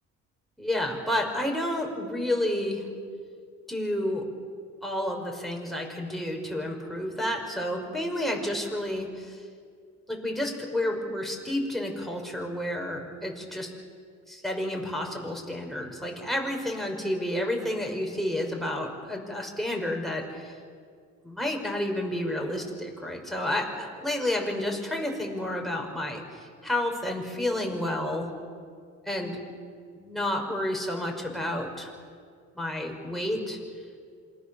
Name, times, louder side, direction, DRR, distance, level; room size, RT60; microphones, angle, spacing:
voice 1, 0.6-2.8 3.7-4.2 4.8-9.4 10.1-13.7 14.3-20.5 21.2-28.3 29.1-29.4 29.9-31.9 32.6-33.6, left 1 dB, ahead, 0 dB, 5.7 m, -30 dB
27.0 x 23.0 x 7.2 m, 2.1 s
cardioid pair, 90°, 30 cm